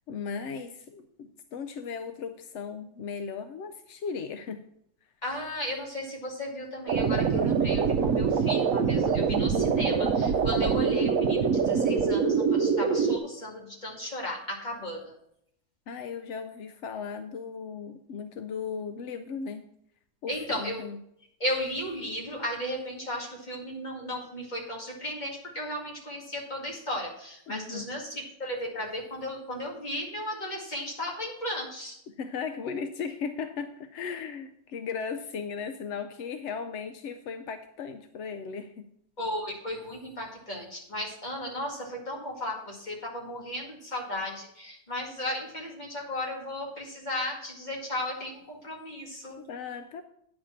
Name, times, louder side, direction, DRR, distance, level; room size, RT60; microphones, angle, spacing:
voice 1, 0.1-4.6 15.9-19.7 20.2-21.0 27.5-27.9 32.1-38.9 49.4-50.0, left 6 dB, 65° left, 9 dB, 0.7 m, -37 dB
voice 2, 5.2-15.1 20.3-20.9 21.4-32.0 39.2-49.4, left 1 dB, 25° left, -2 dB, 2.3 m, -35 dB
sound 1, 6.9-13.2, right 6 dB, 65° right, 1.0 m, -24 dB
9.7 x 5.0 x 7.1 m, 0.73 s
omnidirectional pair, 1.7 m